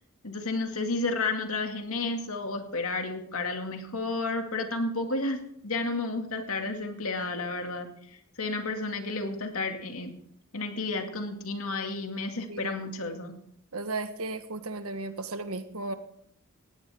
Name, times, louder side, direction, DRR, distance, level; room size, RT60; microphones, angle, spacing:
voice 1, 0.2-10.1 10.5-13.3, left 3 dB, 75° left, 4 dB, 2.3 m, -32 dB
voice 2, 13.7-15.9, right 3 dB, 75° right, 9 dB, 1.4 m, -35 dB
18.5 x 16.5 x 3.7 m, 0.69 s
head